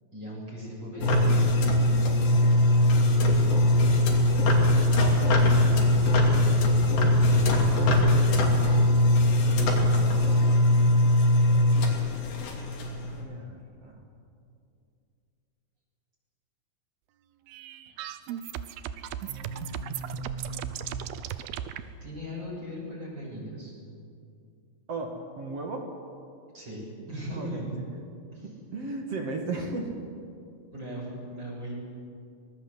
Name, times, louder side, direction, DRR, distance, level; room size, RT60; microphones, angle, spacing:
voice 1, 0.1-1.4 1.9-2.6 5.7-6.7 7.3-7.6 17.9-18.0 22.0-23.7 26.5-26.8 27.1-27.8 28.3-28.5 30.7-31.7, equal, 25° right, -4 dB, 7.3 m, -38 dB
sound 1, 1.0-13.2, left 1 dB, 85° left, 5.0 m, -21 dB
voice 2, 4.7-6.1 9.3-12.8 13.1-14.0 19.3-21.2 24.9-25.9 27.3-27.8 28.4-29.9, right 2 dB, 45° right, 2 dB, 2.5 m, -38 dB
sound 2, 17.5-21.8, right 10 dB, 75° right, 2.6 m, -36 dB
24.5 x 20.5 x 8.0 m, 2.4 s
omnidirectional pair, 4.8 m